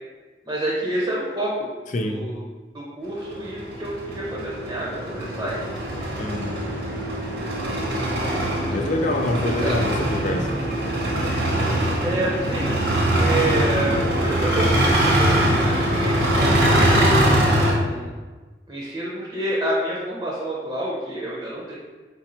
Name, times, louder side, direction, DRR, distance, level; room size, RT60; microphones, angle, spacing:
voice 1, 0.4-1.7 2.0-2.4 2.7-5.6 9.0-9.1 9.6-9.8 12.0-12.7 13.2-15.4 15.7-16.5 17.7-18.1 18.7-21.8, right 1 dB, 20° right, -5 dB, 0.8 m, -28 dB
voice 2, 1.9-2.2 6.2-6.6 8.7-10.5, left 1 dB, 45° left, 3 dB, 0.5 m, -25 dB
sound 1, 3.2-17.7, right 1 dB, 65° right, 1.0 m, -22 dB
4.3 x 2.7 x 4.3 m, 1.3 s
head